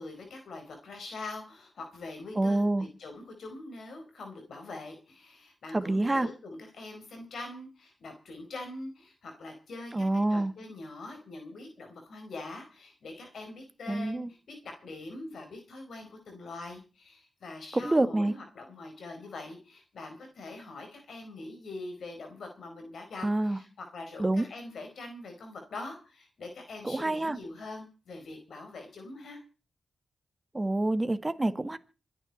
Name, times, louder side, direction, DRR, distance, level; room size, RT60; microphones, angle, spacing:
voice 1, 0.0-29.4, left 2 dB, 80° left, 4.5 m, -43 dB
voice 2, 2.4-2.9 5.7-6.3 9.9-10.5 13.9-14.3 17.7-18.3 23.2-23.6 24.2-24.5 26.8-27.4 30.5-31.8, right 2 dB, 25° right, 1.6 m, -27 dB
26.5 x 9.3 x 4.3 m
cardioid pair, 60°, 0 cm